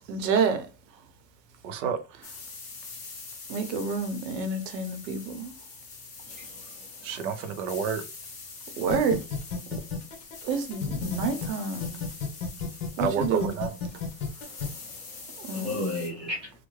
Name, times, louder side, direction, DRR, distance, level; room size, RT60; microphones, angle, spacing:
voice 1, 0.1-0.7 3.5-5.5 8.8-9.2 10.4-12.0 13.0-13.6 15.4-15.9, right 5 dB, 80° right, 0.9 m, -28 dB
voice 2, 1.6-2.0 7.0-8.0 13.0-13.7, right 7 dB, 50° right, 0.6 m, -29 dB
sound 1, 2.2-16.1, left 4 dB, 20° left, 0.9 m, -44 dB
voice 3, 6.3-6.9 14.5-16.5, left 2 dB, ahead, 0.3 m, -36 dB
sound 2, 8.9-11.5 11.8-14.7, left 6 dB, 50° left, 1.1 m, -31 dB
3.3 x 2.1 x 3.2 m
supercardioid pair, 165°, 50 cm